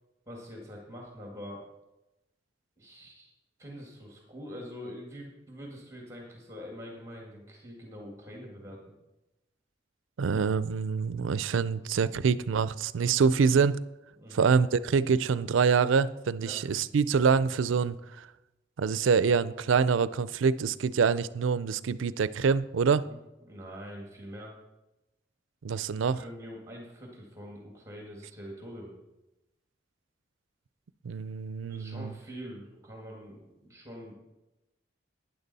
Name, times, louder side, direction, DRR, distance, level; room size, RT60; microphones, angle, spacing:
voice 1, 0.3-1.6 2.8-3.3 3.6-8.8 14.2-14.5 16.4-16.6 23.0-24.5 26.1-28.9 31.7-34.1, equal, 15° right, 0 dB, 1.8 m, -44 dB
voice 2, 10.2-13.8 14.3-18.3 18.8-23.1 25.6-26.2 31.0-32.1, right 5 dB, 85° right, 17 dB, 0.4 m, -25 dB
12.0 x 9.6 x 4.1 m, 0.97 s
head